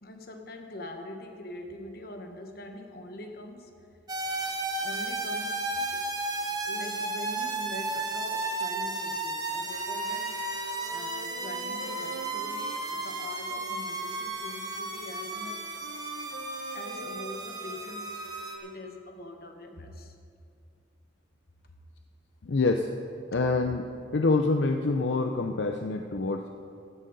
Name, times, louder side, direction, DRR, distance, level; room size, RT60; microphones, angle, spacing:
voice 1, 0.0-3.9 4.8-6.1 6.7-10.4 10.9-15.8 16.7-18.3 18.6-20.2, left 1 dB, 50° left, 4 dB, 1.2 m, -43 dB
sound 1, 4.1-18.6, right 2 dB, 20° right, 1.1 m, -34 dB
sound 2, 9.7-19.1, right 3 dB, 70° right, 0.9 m, -45 dB
voice 2, 22.4-22.9 23.3-23.8 24.1-26.5, left 3 dB, 70° left, 4 dB, 0.5 m, -26 dB
15.0 x 11.5 x 4.0 m, 2.5 s
head